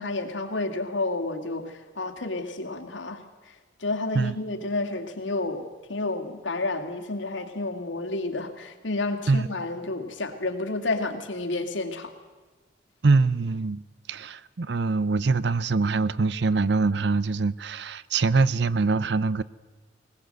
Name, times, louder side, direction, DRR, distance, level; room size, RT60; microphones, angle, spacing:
voice 1, 0.0-3.5 3.8-12.1, left 2 dB, 80° left, 5 dB, 2.4 m, -30 dB
voice 2, 13.0-13.8 14.1-19.4, right 3 dB, 60° right, 19 dB, 0.6 m, -23 dB
20.5 x 20.0 x 7.8 m, 1.3 s
head